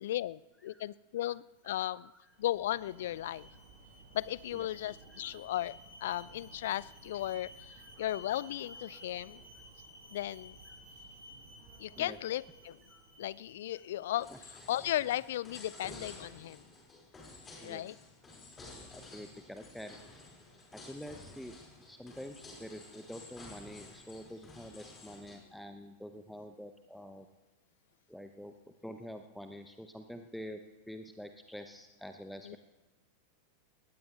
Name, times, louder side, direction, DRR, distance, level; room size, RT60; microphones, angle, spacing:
voice 1, 0.0-2.1 2.4-3.5 4.1-9.4 10.1-10.6 11.8-12.8 13.2-16.6 17.6-17.9 32.4-32.6, left 13 dB, 55° left, 21 dB, 0.4 m, -36 dB
voice 2, 1.7-2.2 4.5-4.7 5.1-5.2 7.8-8.1 12.0-12.2 12.9-13.0 14.3-14.4 17.6-17.8 18.7-20.3 20.7-21.6 21.9-27.3 28.1-28.5 28.8-30.6 30.9-32.6, equal, ahead, 7 dB, 0.9 m, -47 dB
Alarm, 2.3-14.3, right 1 dB, 50° right, 6.6 m, -54 dB
sound 1, 14.2-25.4, left 2 dB, 20° left, 5.1 m, -52 dB
20.5 x 18.0 x 3.3 m, 1.1 s
figure-of-eight pair, 90°, 0 cm